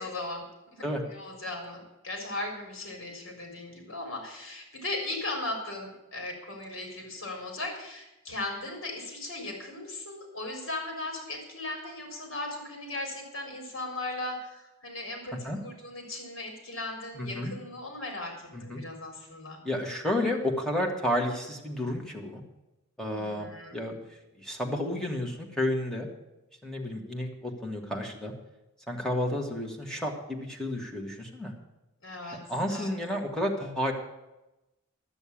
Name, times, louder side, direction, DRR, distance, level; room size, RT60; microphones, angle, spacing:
voice 1, 0.0-19.6 23.1-23.8 32.0-32.4 32.7-32.9, left 2 dB, 65° left, 2 dB, 3.8 m, -37 dB
voice 2, 17.1-17.5 18.5-18.8 19.6-22.4 23.0-23.5 23.7-26.1 26.6-28.3 28.9-31.5 32.5-33.9, left 1 dB, 5° left, 0 dB, 1.8 m, -31 dB
12.5 x 7.0 x 8.5 m, 0.96 s
head